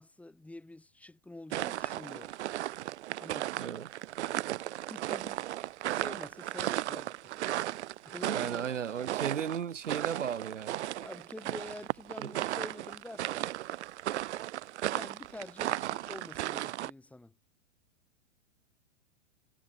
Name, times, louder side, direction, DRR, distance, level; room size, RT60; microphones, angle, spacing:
voice 1, 0.0-2.3 3.2-3.6 4.9-5.4 5.9-7.4 7.7-8.7 11.0-13.6 14.9-17.3, left 2 dB, 5° left, 1.9 m, -47 dB
sound 1, 1.5-16.9, right 14 dB, 65° right, 0.7 m, -35 dB
voice 2, 3.5-3.9 8.2-10.9 12.2-12.3, right 8 dB, 80° right, 3.0 m, -35 dB
hypercardioid pair, 120°, 37 cm